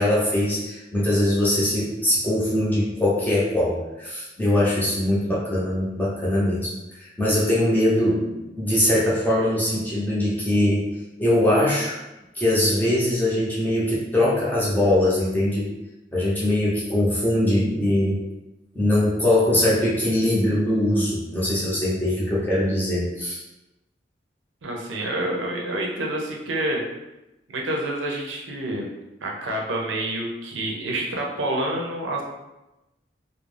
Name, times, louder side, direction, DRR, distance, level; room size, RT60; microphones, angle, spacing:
voice 1, 0.0-6.7 7.0-10.9 11.2-12.0 12.3-15.7 16.1-18.2 18.7-23.4, left 1 dB, 10° left, -7 dB, 0.6 m, -22 dB
voice 2, 24.6-26.8 27.5-28.9 29.2-32.2, right 1 dB, 90° right, 0 dB, 0.5 m, -28 dB
2.4 x 2.0 x 3.2 m, 0.98 s
head